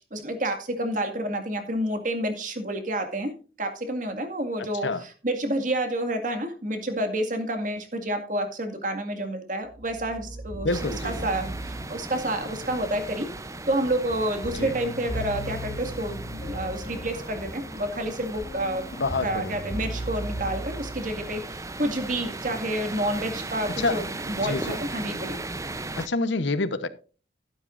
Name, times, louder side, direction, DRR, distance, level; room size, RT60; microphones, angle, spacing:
voice 1, 0.1-10.7 11.0-13.3 13.7-18.9 19.2-25.4, right 1 dB, 45° right, 2.1 m, -29 dB
sound 1, 9.7-21.8, equal, 45° left, 3.1 m, -38 dB
voice 2, 10.6-11.3 14.5-14.7 19.0-19.6 23.8-24.0 24.4-24.8 26.0-26.9, left 3 dB, 90° left, 1.0 m, -27 dB
sound 2, 10.7-26.1, right 2 dB, 15° right, 0.7 m, -37 dB
12.5 x 11.5 x 2.6 m
head